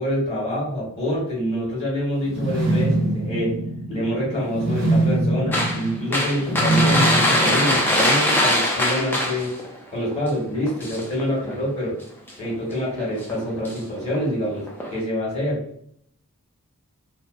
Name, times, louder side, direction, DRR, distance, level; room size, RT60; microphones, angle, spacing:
voice 1, 0.0-3.6 3.9-9.5 9.9-11.9 12.4-15.6, equal, 30° left, -6 dB, 1.3 m, -26 dB
sound 1, 2.2-8.3, right 2 dB, 70° right, 0.9 m, -24 dB
sound 2, 5.5-9.7 10.1-10.3 10.6-11.6 12.3-12.6 13.1-13.8 14.1-14.2 14.7-15.0, left 1 dB, 10° left, 0.3 m, -22 dB
2.7 x 2.1 x 2.3 m, 0.69 s
head